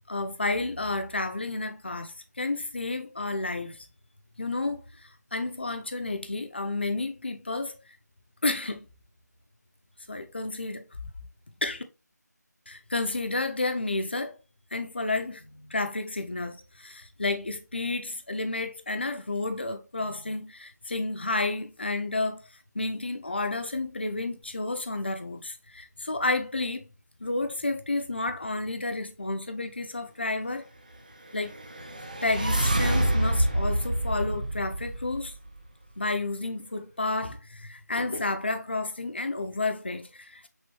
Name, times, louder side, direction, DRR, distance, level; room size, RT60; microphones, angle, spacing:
voice 1, 0.1-3.9 4.4-7.7 8.4-8.9 10.1-10.9 11.6-11.8 12.7-14.4 14.7-22.4 22.7-26.9 27.2-30.7 31.3-31.6 32.2-35.3 36.0-40.5, left 2 dB, 35° left, 0.5 m, -31 dB
sound 1, 31.4-35.6, right 1 dB, 25° right, 0.4 m, -27 dB
6.2 x 2.7 x 2.9 m
figure-of-eight pair, 175°, 10 cm